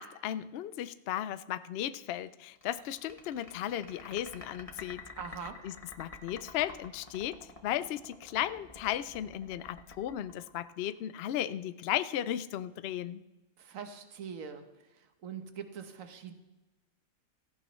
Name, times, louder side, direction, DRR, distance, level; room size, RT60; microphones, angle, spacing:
voice 1, 0.0-5.0 5.6-13.2, left 11 dB, 65° left, 14 dB, 0.6 m, -35 dB
sound 1, 2.6-11.2, left 3 dB, 25° left, 1.3 m, -49 dB
voice 2, 5.2-5.6 13.6-14.6 15.2-16.3, right 7 dB, 65° right, 7 dB, 1.5 m, -42 dB
17.0 x 15.0 x 3.1 m, 1.1 s
omnidirectional pair, 1.5 m